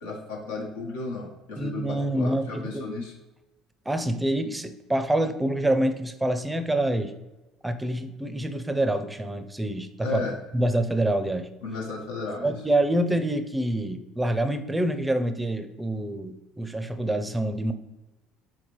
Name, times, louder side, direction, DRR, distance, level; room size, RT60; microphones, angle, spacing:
voice 1, 0.0-3.1 10.0-10.3 11.6-12.5, left 3 dB, 90° left, -2 dB, 1.2 m, -34 dB
voice 2, 1.6-2.9 3.9-7.1 7.6-10.3 10.5-11.5 12.4-17.7, right 1 dB, 10° right, 10 dB, 0.5 m, -26 dB
4.2 x 3.9 x 3.1 m, 1.1 s
supercardioid pair, 80°, 0 cm